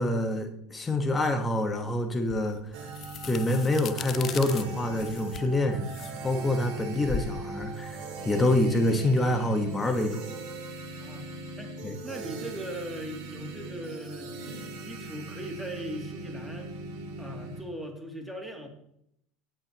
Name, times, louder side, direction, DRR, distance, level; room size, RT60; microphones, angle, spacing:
voice 1, 0.0-2.6 3.2-5.9 6.2-10.2 11.8-11.9, left 1 dB, 15° left, 4 dB, 1.4 m, -26 dB
sound 1, 2.3-9.1, left 8 dB, 40° left, 0.7 m, -40 dB
sound 2, 2.7-17.6, right 3 dB, 65° right, 4.9 m, -40 dB
voice 2, 11.0-11.8 12.0-14.4 14.8-16.7 17.2-18.7, right 1 dB, ahead, 1 dB, 2.8 m, -39 dB
18.0 x 8.9 x 3.1 m, 0.75 s
supercardioid pair, 100°, 0 cm